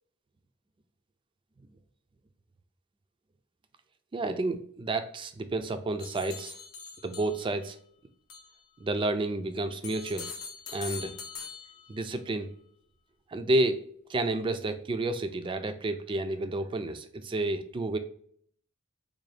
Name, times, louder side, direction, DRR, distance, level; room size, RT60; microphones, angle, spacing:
voice 1, 4.1-6.6 7.0-7.8 8.8-10.3 10.7-11.2 11.9-12.5 13.3-13.8 14.1-18.0, right 2 dB, 25° right, 9 dB, 0.3 m, -30 dB
sound 1, 6.0-7.7 8.3-8.6 9.8-12.1, left 5 dB, 80° left, 0.7 m, -42 dB
3.8 x 2.3 x 3.2 m, 0.62 s
head